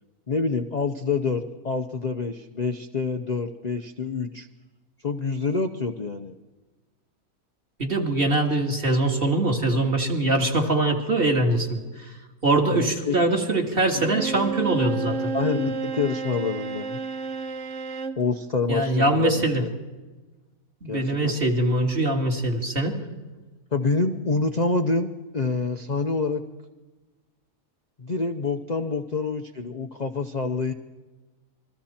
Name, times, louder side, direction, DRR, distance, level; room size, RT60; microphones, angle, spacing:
voice 1, 0.3-4.5 5.0-6.3 12.7-13.2 13.9-14.0 15.3-17.0 18.2-19.7 20.9-21.5 23.7-26.4 28.0-30.7, left 4 dB, 40° left, 6 dB, 0.6 m, -27 dB
voice 2, 7.8-11.8 12.4-15.2 18.7-19.6 20.8-22.9, right 2 dB, 35° right, 2 dB, 2.4 m, -23 dB
Bowed string instrument, 13.9-18.3, right 4 dB, 50° right, 1.1 m, -31 dB
28.0 x 21.5 x 4.4 m, 1.2 s
omnidirectional pair, 1.8 m